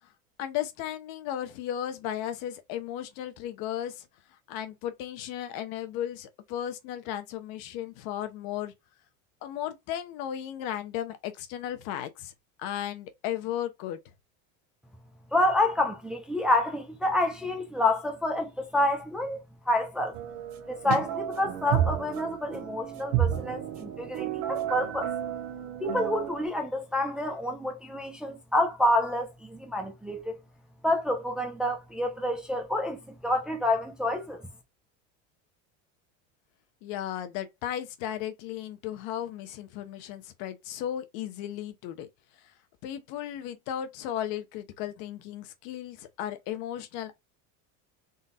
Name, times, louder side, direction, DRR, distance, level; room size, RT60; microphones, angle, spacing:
voice 1, 0.4-4.1 4.5-8.7 9.4-12.3 12.6-14.0 36.8-42.1 42.8-47.2, left 11 dB, 55° left, 0.9 m, -35 dB
voice 2, 15.3-19.4 19.7-20.2 20.7-25.1 25.8-30.4 30.8-34.4, left 1 dB, ahead, 0.6 m, -28 dB
sound 1, 20.1-26.4, right 10 dB, 60° right, 1.0 m, -31 dB
3.9 x 2.4 x 4.1 m
supercardioid pair, 140°, 40 cm